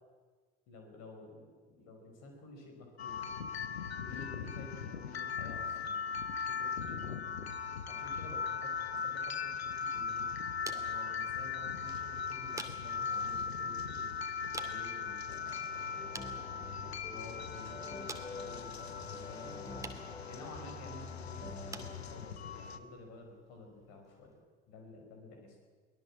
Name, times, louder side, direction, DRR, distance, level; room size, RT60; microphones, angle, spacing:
voice 1, 0.7-3.3 4.0-7.5 7.9-10.3 10.7-14.1 14.6-16.3 16.7-18.1 18.4-19.8 20.2-25.7, left 2 dB, 55° left, 3 dB, 5.6 m, -52 dB
sound 1, 3.0-22.8, left 6 dB, 80° left, 1.0 m, -39 dB
sound 2, 9.4-24.5, right 2 dB, 10° right, 2.3 m, -53 dB
sound 3, 15.3-22.3, left 2 dB, 10° left, 1.4 m, -48 dB
23.5 x 18.5 x 7.5 m, 1.5 s
figure-of-eight pair, 60°, 31 cm